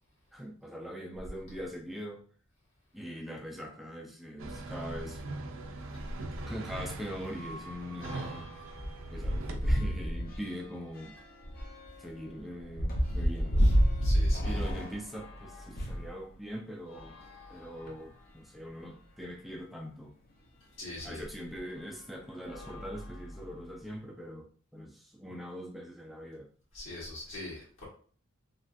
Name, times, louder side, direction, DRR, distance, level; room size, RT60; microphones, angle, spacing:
voice 1, 0.3-2.2 2.9-5.2 6.2-8.5 9.1-11.2 12.0-13.6 14.4-17.2 17.5-20.1 21.0-26.5, equal, ahead, 0 dB, 0.4 m, -42 dB
sound 1, 4.4-9.6, right 2 dB, 70° right, 0.4 m, -41 dB
sound 2, 5.7-5.8 6.2-6.4 6.6-16.1 16.8-18.2 18.9-19.0 19.2-19.3 21.0-21.1 21.7-22.0 22.4-23.7, equal, 45° left, 0.6 m, -31 dB
voice 2, 14.0-14.6 20.8-21.2 26.7-27.9, left 2 dB, 65° left, -7 dB, 1.1 m, -42 dB
3.1 x 2.4 x 2.5 m, 0.43 s
head